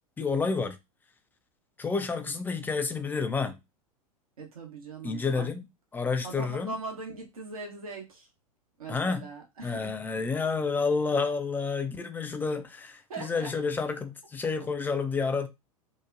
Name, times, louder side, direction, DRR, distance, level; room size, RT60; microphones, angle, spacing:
voice 1, 0.2-0.8 1.8-3.6 5.0-5.6 5.9-6.7 8.9-9.3 9.6-15.5, left 4 dB, 10° left, 0.4 m, -29 dB
voice 2, 4.4-5.5 6.2-8.3 8.8-9.9 13.1-13.5, right 3 dB, 75° right, 1.0 m, -40 dB
2.9 x 2.1 x 2.4 m
figure-of-eight pair, 90°, 18 cm